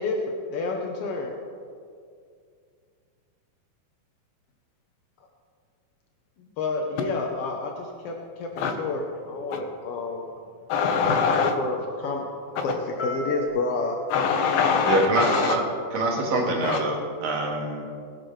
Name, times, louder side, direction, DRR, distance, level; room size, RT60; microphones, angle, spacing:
voice 1, 0.0-1.3 6.4-10.3 11.4-12.2 12.6-14.0, left 3 dB, 70° left, 1 dB, 1.4 m, -29 dB
sound 1, 8.5-13.5, left 1 dB, 45° left, 1.8 m, -41 dB
voice 2, 10.7-11.5 14.1-15.6 16.6-16.8, left 6 dB, 85° left, 4 dB, 2.9 m, -23 dB
voice 3, 14.9-15.6 15.9-17.9, right 2 dB, 80° right, -1 dB, 3.4 m, -25 dB
20.0 x 11.0 x 3.3 m, 2.3 s
omnidirectional pair, 3.9 m